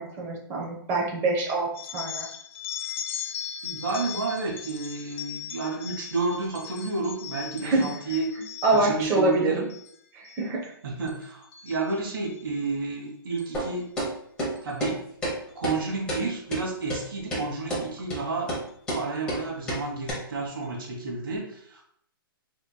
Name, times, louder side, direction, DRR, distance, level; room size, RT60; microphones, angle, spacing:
voice 1, 0.0-2.3 7.6-7.9 8.6-9.6 10.1-10.7, right 2 dB, 20° right, -1 dB, 0.8 m, -25 dB
sound 1, 1.7-9.0 9.5-9.9 10.2-10.7 11.1-12.4 13.4-13.6 14.6-14.7 15.7-15.8 16.2-16.3 16.8-17.1, left 9 dB, 35° left, 0.4 m, -39 dB
voice 2, 3.6-8.3 8.7-9.7 10.8-13.8 14.6-15.1 15.5-18.5 18.9-21.8, right 3 dB, 65° right, -1 dB, 1.2 m, -31 dB
sound 2, 13.5-13.7 14.0-14.1 14.4-14.5 14.8-14.9 15.2-15.3 15.6-15.8 16.1-16.2 16.5-16.6 16.9-17.0 17.3-17.4 17.7-17.8 18.1-18.2 18.5-18.6 18.9-19.0 19.3-19.4 19.7-19.8 20.1-20.2, right 1 dB, 5° left, 0.9 m, -29 dB
4.2 x 3.1 x 2.2 m, 0.67 s
hypercardioid pair, 155°, 12 cm